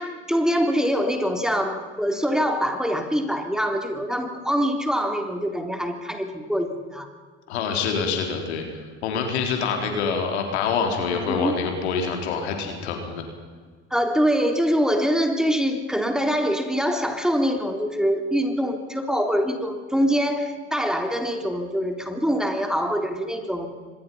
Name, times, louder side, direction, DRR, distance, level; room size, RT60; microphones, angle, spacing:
voice 1, 0.0-7.1 11.1-11.5 13.9-23.7, equal, ahead, 5 dB, 3.4 m, -24 dB
voice 2, 7.5-13.2, left 5 dB, 85° left, 3 dB, 4.0 m, -26 dB
25.0 x 21.0 x 5.7 m, 1.5 s
hypercardioid pair, 70°, 32 cm